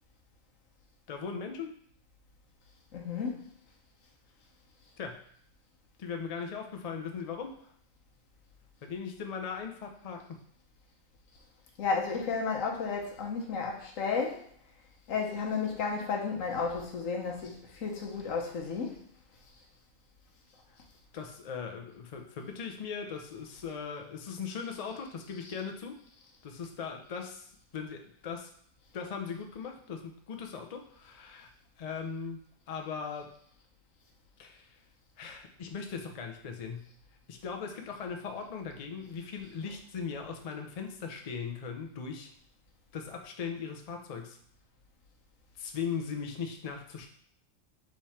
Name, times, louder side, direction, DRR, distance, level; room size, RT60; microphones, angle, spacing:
voice 1, 1.1-1.7 5.0-5.2 6.0-7.5 8.8-10.4 21.1-26.0 26.4-28.5 28.9-31.5 31.8-32.4 32.7-33.3 34.4-34.7 35.2-36.9 37.3-42.3 42.9-44.4 45.6-47.1, left 6 dB, 60° left, 3 dB, 0.4 m, -39 dB
voice 2, 2.9-3.5 11.8-14.4 15.1-19.0 25.3-25.4, left 5 dB, 75° left, 0 dB, 1.2 m, -33 dB
3.6 x 3.2 x 4.2 m, 0.64 s
omnidirectional pair, 1.4 m